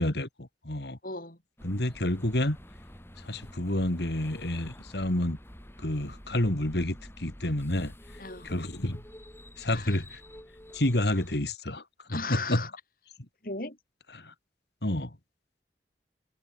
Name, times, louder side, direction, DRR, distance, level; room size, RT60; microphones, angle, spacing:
voice 1, 0.0-1.0 1.6-2.6 3.2-5.4 5.8-7.9 8.4-9.0 9.6-10.2 10.7-11.8 12.1-12.6 14.1-14.3 14.8-15.2, left 1 dB, 70° left, 2.8 m, -29 dB
voice 2, 1.0-1.4 8.2-8.5 9.7-10.0 12.1-12.7 13.4-13.8, left 3 dB, 50° left, 6.4 m, -36 dB
sound 1, 1.6-11.4, equal, 15° left, 6.2 m, -49 dB
head